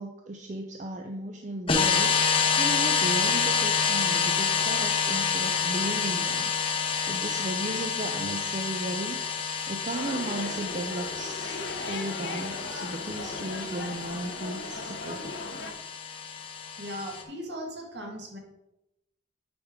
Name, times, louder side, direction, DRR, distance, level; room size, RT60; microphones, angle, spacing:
voice 1, 0.0-6.5 7.0-9.2 9.7-11.6 11.9-15.4, right 1 dB, 40° right, 3 dB, 0.5 m, -35 dB
sound 1, 1.7-17.2, left 6 dB, 30° left, 0.7 m, -28 dB
sound 2, 9.9-15.7, left 3 dB, 65° left, 0.9 m, -38 dB
voice 2, 16.8-18.4, equal, 60° right, 1 dB, 1.6 m, -38 dB
9.5 x 5.0 x 3.6 m, 0.88 s
head